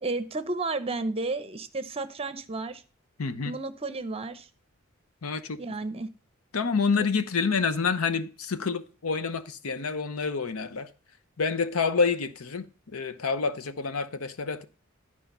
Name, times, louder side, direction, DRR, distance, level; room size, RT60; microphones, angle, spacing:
voice 1, 0.0-2.8 3.4-4.5 5.6-6.1, right 3 dB, 30° right, 0.8 m, -32 dB
voice 2, 3.2-3.5 5.2-5.6 6.5-10.9 11.4-14.6, left 5 dB, 90° left, 0.8 m, -28 dB
11.5 x 4.9 x 5.4 m
head